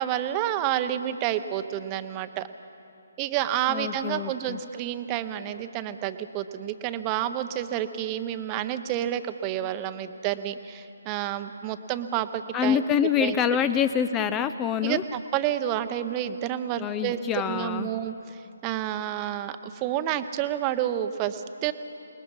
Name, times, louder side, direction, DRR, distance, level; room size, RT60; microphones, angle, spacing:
voice 1, 0.0-2.5 3.2-12.8 13.2-13.4 14.8-17.2 17.5-21.7, right 11 dB, 25° right, 10 dB, 0.8 m, -29 dB
voice 2, 3.7-4.6 12.5-15.0 16.8-17.9, left 8 dB, 15° left, 12 dB, 0.5 m, -26 dB
28.0 x 19.5 x 5.6 m, 2.7 s
figure-of-eight pair, 145°, 0 cm